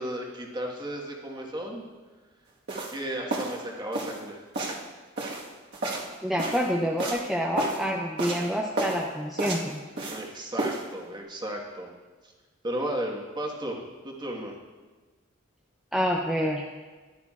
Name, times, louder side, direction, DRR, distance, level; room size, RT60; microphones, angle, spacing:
voice 1, 0.0-1.8 2.9-4.4 10.0-11.9 12.6-13.8 14.0-14.6, right 1 dB, 20° right, -1 dB, 1.5 m, -34 dB
sound 1, 2.7-3.0 3.3-3.6 3.9-4.2 4.5-4.9 5.2-6.7 7.0-7.3 7.6-7.9 8.2-8.5 8.8-9.0 9.4-10.3 10.6-10.8, right 2 dB, 60° right, 1.5 m, -31 dB
voice 2, 6.2-9.8 15.9-16.6, equal, ahead, -2 dB, 0.6 m, -27 dB
14.5 x 11.0 x 2.4 m, 1.3 s
head